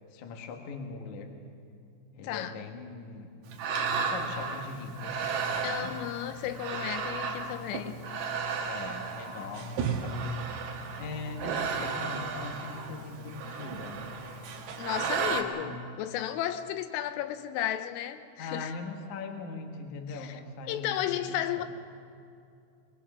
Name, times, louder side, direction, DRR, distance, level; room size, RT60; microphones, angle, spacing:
voice 1, 0.1-1.4 2.1-3.4 4.0-5.9 8.7-10.4 11.0-14.1 15.3-15.8 18.4-21.0 21.3-21.6, left 4 dB, 55° left, 4 dB, 2.3 m, -41 dB
voice 2, 2.2-2.6 5.6-8.0 14.8-18.7 20.1-20.4 20.7-21.6, left 11 dB, 85° left, 10 dB, 3.5 m, -34 dB
sound 1, 3.5-15.4, right 5 dB, 65° right, 3.0 m, -34 dB
23.5 x 21.5 x 6.2 m, 2.5 s
omnidirectional pair, 5.7 m